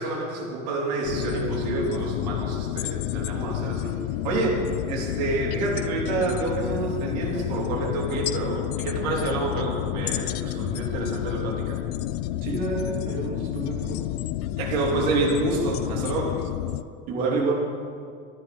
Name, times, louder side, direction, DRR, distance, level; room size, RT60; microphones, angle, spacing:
voice 1, 0.0-4.0 4.2-11.8 14.6-16.4, right 3 dB, 70° right, -2 dB, 3.7 m, -28 dB
sound 1, 1.0-16.8, left 14 dB, 65° left, 0.6 m, -30 dB
voice 2, 12.4-14.0 17.1-17.5, right 4 dB, 40° right, -2 dB, 3.0 m, -28 dB
13.5 x 11.5 x 5.9 m, 2.2 s
cardioid pair, 175°, 21 cm